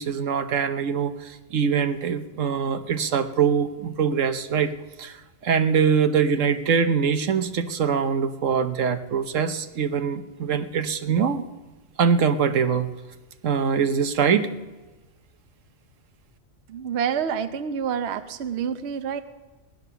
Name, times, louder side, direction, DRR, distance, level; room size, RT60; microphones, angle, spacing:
voice 1, 0.0-4.7 5.0-5.2 5.4-11.4 12.0-12.9 13.4-14.5, right 6 dB, 80° right, 9 dB, 1.3 m, -23 dB
voice 2, 16.7-19.2, right 7 dB, 60° right, 10 dB, 0.9 m, -28 dB
18.0 x 10.5 x 6.8 m, 1.2 s
omnidirectional pair, 1.3 m